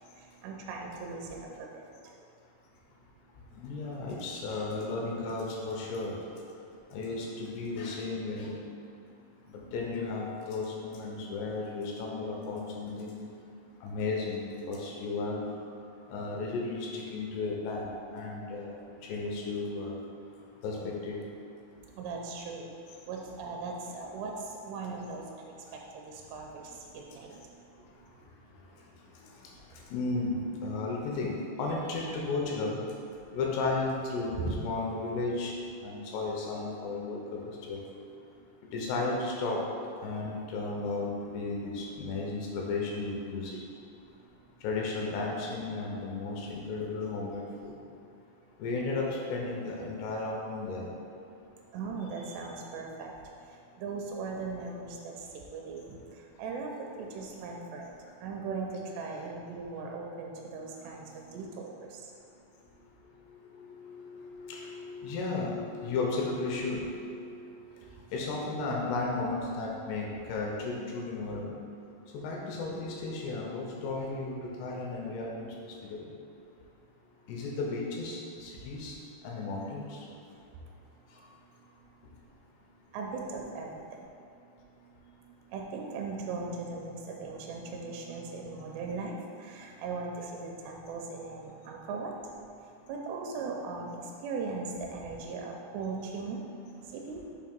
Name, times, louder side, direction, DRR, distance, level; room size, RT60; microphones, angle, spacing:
voice 1, 0.2-1.9 9.6-9.7 22.0-22.7 23.1-25.5 25.9-27.4 34.4-34.6 51.7-53.2 53.8-55.9 56.4-57.9 58.2-62.1 67.8-67.9 79.3-79.7 80.3-80.4 82.9-84.1 85.5-92.1 92.9-96.4 96.9-97.2, right 4 dB, 85° right, 0 dB, 2.6 m, -38 dB
voice 2, 3.6-6.2 6.9-8.5 9.5-13.2 13.8-15.5 16.1-18.8 19.1-20.0 20.6-21.2 29.9-32.8 33.3-35.5 35.8-37.8 38.7-39.6 40.0-43.6 44.6-47.7 48.6-50.9 63.8-67.2 68.1-71.6 72.1-76.1 77.3-79.0 79.2-79.8, left 3 dB, 85° left, -1 dB, 2.7 m, -34 dB
6.6 x 2.8 x 5.2 m, 2.6 s
omnidirectional pair, 4.9 m